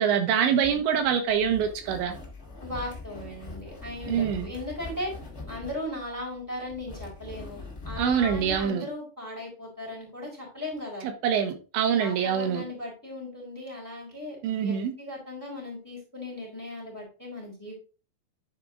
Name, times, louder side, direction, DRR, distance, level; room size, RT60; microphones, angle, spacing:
voice 1, 0.0-2.2 4.1-4.5 8.0-8.9 11.2-12.7 14.4-14.9, right 8 dB, 90° right, 3.5 m, -25 dB
sound 1, 0.6-8.7, left 3 dB, 35° left, 1.0 m, -42 dB
voice 2, 2.6-5.1 5.5-11.1 12.0-17.7, left 1 dB, 5° left, 3.2 m, -37 dB
10.5 x 4.8 x 3.7 m
omnidirectional pair, 5.1 m